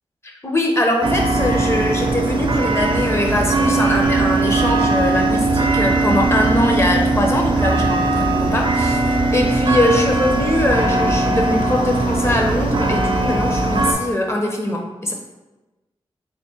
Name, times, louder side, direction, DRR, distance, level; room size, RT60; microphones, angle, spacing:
voice 1, 0.2-9.0 9.3-15.1, left 1 dB, 25° left, 1 dB, 0.8 m, -21 dB
sound 1, 1.0-13.9, right 2 dB, 50° right, 0.5 m, -19 dB
3.6 x 2.2 x 3.8 m, 1.1 s
cardioid pair, 50°, 10 cm